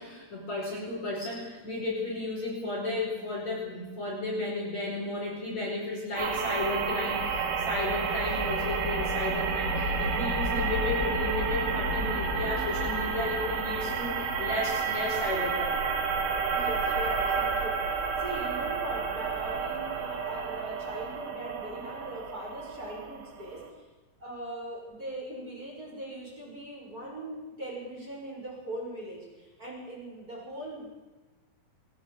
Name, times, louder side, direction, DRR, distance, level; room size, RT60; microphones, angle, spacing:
voice 1, 0.0-15.9, left 2 dB, 35° left, -3 dB, 5.8 m, -33 dB
sound 1, 6.2-23.7, right 4 dB, 70° right, 5.5 m, -30 dB
voice 2, 16.5-23.7 24.2-30.9, right 1 dB, 15° right, -4 dB, 6.9 m, -40 dB
21.5 x 19.0 x 8.5 m, 1.2 s
omnidirectional pair, 5.8 m